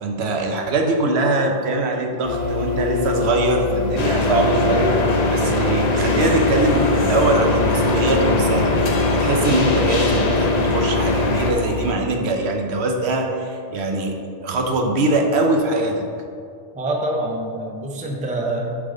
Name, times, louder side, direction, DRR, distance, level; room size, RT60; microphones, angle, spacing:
voice 1, 0.0-5.0 5.3-8.7 9.0-16.0, right 2 dB, 70° right, 3 dB, 0.9 m, -22 dB
sound 1, 2.2-11.9, left 6 dB, 90° left, 1.0 m, -25 dB
sound 2, 4.0-11.5, left 1 dB, 45° left, 0.7 m, -21 dB
voice 2, 16.7-18.8, right 1 dB, 10° right, 0 dB, 0.5 m, -26 dB
8.6 x 3.7 x 3.8 m, 2.3 s
omnidirectional pair, 1.2 m